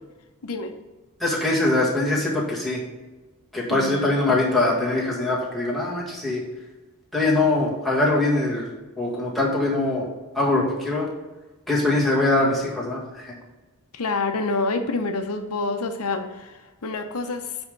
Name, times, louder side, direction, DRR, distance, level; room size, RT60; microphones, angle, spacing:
voice 1, 0.4-0.7 3.7-4.2 13.9-17.5, left 3 dB, 75° left, 6 dB, 0.7 m, -27 dB
voice 2, 1.2-2.8 3.5-6.4 7.1-8.7 9.0-10.1 10.4-11.1 11.7-13.4, left 2 dB, ahead, -6 dB, 1.8 m, -22 dB
9.4 x 3.5 x 5.3 m, 1.2 s
head